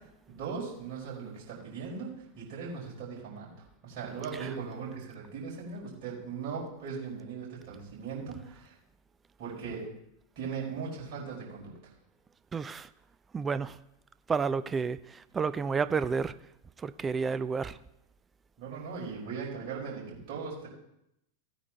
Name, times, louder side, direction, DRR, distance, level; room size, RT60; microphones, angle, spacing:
voice 1, 0.3-3.5 3.8-8.7 9.4-9.9 10.3-11.9 18.6-20.7, right 5 dB, 45° right, -5 dB, 4.8 m, -39 dB
voice 2, 12.5-12.9 13.3-13.8 14.3-16.3 16.8-17.8, right 5 dB, 20° right, 15 dB, 0.4 m, -30 dB
16.0 x 9.2 x 2.9 m, 0.80 s
figure-of-eight pair, 90°, 0 cm